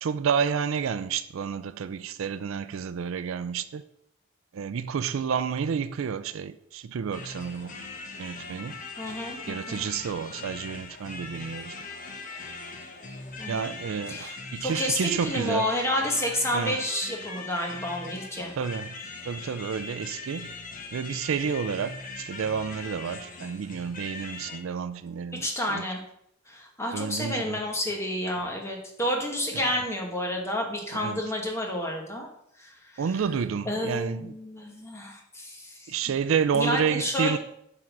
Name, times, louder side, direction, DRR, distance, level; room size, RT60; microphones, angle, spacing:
voice 1, 0.0-3.8 4.5-7.8 8.2-8.8 9.5-11.7 13.5-15.7 16.5-16.8 18.6-19.0 19.2-20.5 20.9-25.8 26.9-27.6 29.5-29.7 30.9-31.2 33.0-34.3 35.9-37.4, right 6 dB, 80° right, 0.4 m, -30 dB
sound 1, 7.1-24.6, left 3 dB, 40° left, 0.9 m, -40 dB
voice 2, 9.0-9.8 13.4-13.7 14.1-14.3 14.6-18.5 25.3-26.0 26.5-32.3 32.6-33.0 33.7-36.0 36.5-37.4, left 1 dB, 15° left, 1.2 m, -30 dB
7.5 x 3.9 x 6.0 m
head